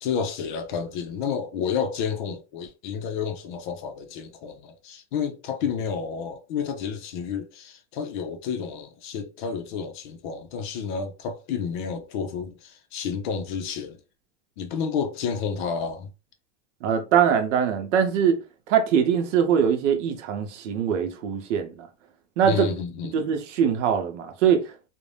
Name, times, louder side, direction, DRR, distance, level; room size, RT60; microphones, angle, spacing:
voice 1, 0.0-14.0 14.6-16.1 22.4-23.2, left 6 dB, 45° left, 0.4 m, -30 dB
voice 2, 16.8-18.4 18.7-21.9 22.4-22.7 23.1-24.7, right 8 dB, 75° right, 0.8 m, -22 dB
2.6 x 2.1 x 3.2 m
supercardioid pair, 180°, 36 cm